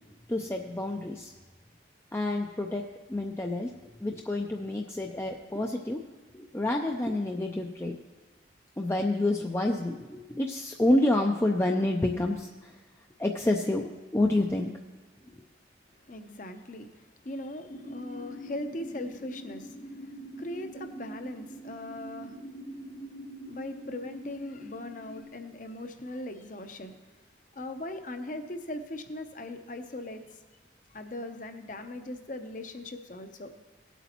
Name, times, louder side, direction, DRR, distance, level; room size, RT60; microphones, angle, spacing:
voice 1, 0.3-1.3 2.1-3.7 4.0-6.1 6.3-8.0 8.8-12.8 13.2-14.7, left 1 dB, 15° left, 2 dB, 0.4 m, -28 dB
voice 2, 16.1-22.4 23.4-27.1 27.5-30.4 30.9-33.5, left 1 dB, 45° left, 7 dB, 0.8 m, -40 dB
sound 1, 17.7-25.2, equal, 75° left, 3.9 m, -43 dB
17.5 x 8.1 x 3.0 m, 1.3 s
head